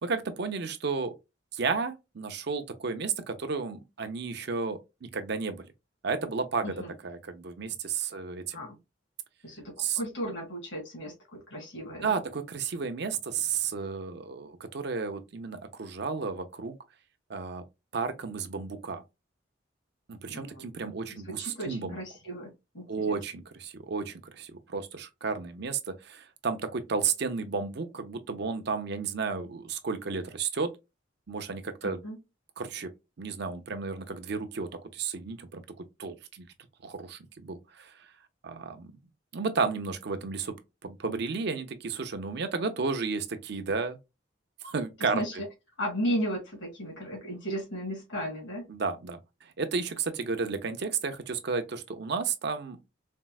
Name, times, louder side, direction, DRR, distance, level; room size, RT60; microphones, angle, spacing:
voice 1, 0.0-1.1 1.5-5.7 6.0-8.6 9.8-10.0 12.0-16.8 17.3-17.6 17.9-19.0 20.1-22.0 22.9-30.7 31.3-32.0 32.6-32.9 33.2-36.5 36.8-38.1 38.4-38.9 39.3-40.5 40.8-44.0 44.6-45.4 48.7-52.8, right 5 dB, 60° right, 0.6 m, -33 dB
voice 2, 6.6-6.9 8.5-8.8 9.4-12.2 20.3-20.7 21.1-23.2 31.8-32.2 45.0-45.4 45.8-48.7, equal, 80° left, 2.0 m, -35 dB
4.4 x 2.1 x 2.3 m
head